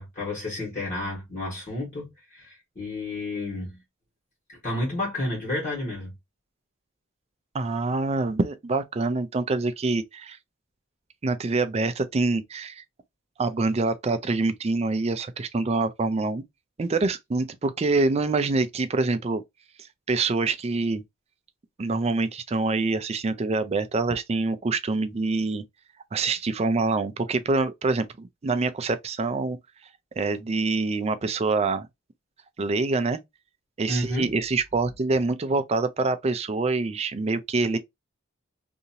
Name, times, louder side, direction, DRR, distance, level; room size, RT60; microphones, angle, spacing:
voice 1, 0.0-3.8 4.6-6.1 33.9-34.3, left 1 dB, 40° left, 1.5 m, -31 dB
voice 2, 7.5-10.4 11.2-12.8 13.4-16.4 16.8-19.4 20.1-21.0 21.8-25.6 26.1-29.6 30.2-31.9 32.6-33.2 33.8-37.8, right 3 dB, 30° right, 0.4 m, -25 dB
2.8 x 2.6 x 2.7 m
head